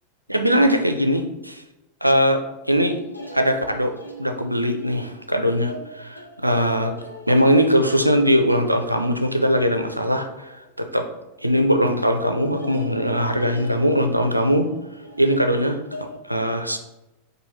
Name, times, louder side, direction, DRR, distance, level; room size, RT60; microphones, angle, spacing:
voice 1, 0.3-1.6 2.0-2.4 2.7-3.0 3.3-6.9 7.3-11.1 11.4-14.7 15.2-16.8, equal, 90° right, 6 dB, 0.4 m, -21 dB
sound 1, 2.7-11.5 11.8-12.2 12.6-16.2, right 1 dB, 90° left, 0.6 m, -42 dB
4.7 x 2.6 x 4.1 m, 0.97 s
figure-of-eight pair, 90°, 0 cm